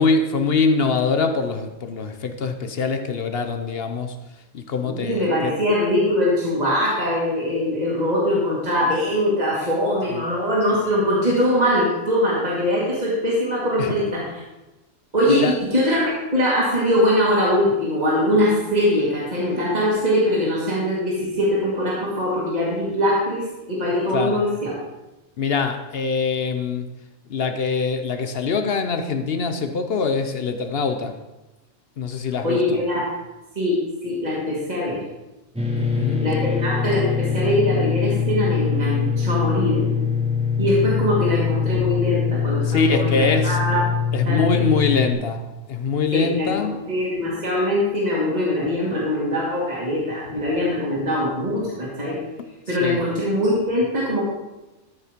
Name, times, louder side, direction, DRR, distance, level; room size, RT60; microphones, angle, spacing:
voice 1, 0.0-4.2 4.5-5.5 10.1-10.3 13.8-14.1 15.3-15.6 24.1-24.5 25.4-26.9 27.3-31.2 32.0-32.8 35.8-36.3 41.7-41.9 42.6-43.6 44.1-46.9 50.3-50.4 52.7-53.0, left 4 dB, 55° left, 7 dB, 0.9 m, -24 dB
voice 2, 4.8-14.2 15.1-24.7 32.4-33.1 33.6-35.0 36.2-39.9 40.6-43.8 44.2-44.6 46.1-52.2 52.7-54.2, left 1 dB, 30° right, -6 dB, 2.4 m, -22 dB
sound 1, 35.6-45.1, left 6 dB, 5° right, 1.4 m, -23 dB
13.0 x 5.5 x 5.1 m, 1.0 s
omnidirectional pair, 1.3 m